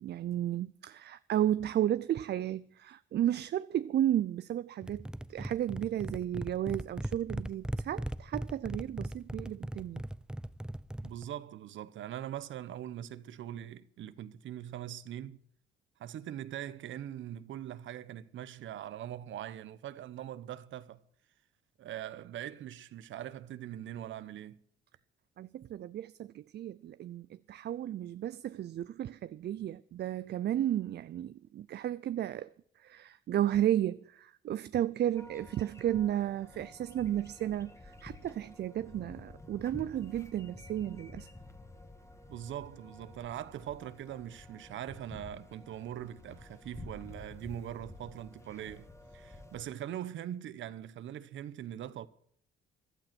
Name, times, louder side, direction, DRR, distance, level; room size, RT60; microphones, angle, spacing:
voice 1, 0.0-10.0 25.4-41.3, right 11 dB, 60° right, 0.5 m, -33 dB
sound 1, 4.8-11.3, right 1 dB, 5° right, 0.5 m, -39 dB
voice 2, 11.0-15.4 16.0-21.0 21.8-24.6 42.3-48.9 49.1-52.1, right 11 dB, 75° right, 1.0 m, -42 dB
sound 2, 35.2-49.6, left 2 dB, 15° left, 1.8 m, -51 dB
15.5 x 12.0 x 6.0 m
cardioid pair, 90°, 20 cm